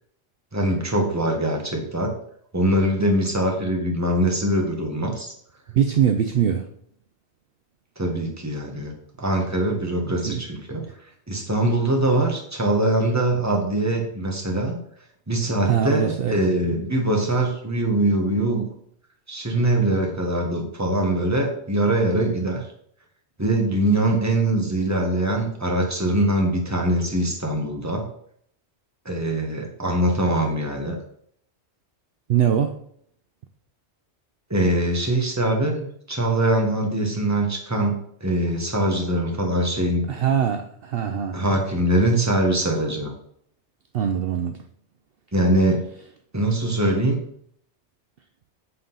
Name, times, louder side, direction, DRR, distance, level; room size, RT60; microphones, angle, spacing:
voice 1, 0.5-2.1 2.5-5.3 8.0-8.9 9.2-10.8 11.3-14.8 15.3-18.7 19.3-22.6 23.4-28.1 29.0-30.9 34.5-37.9 38.2-40.0 41.3-43.1 45.3-45.8 46.3-47.2, right 1 dB, 15° right, 1 dB, 1.4 m, -22 dB
voice 2, 5.7-6.7 10.0-10.4 15.7-16.4 32.3-32.8 40.1-41.4 43.9-44.6, right 9 dB, 60° right, 5 dB, 0.7 m, -22 dB
8.0 x 3.8 x 5.5 m, 0.67 s
omnidirectional pair, 1.2 m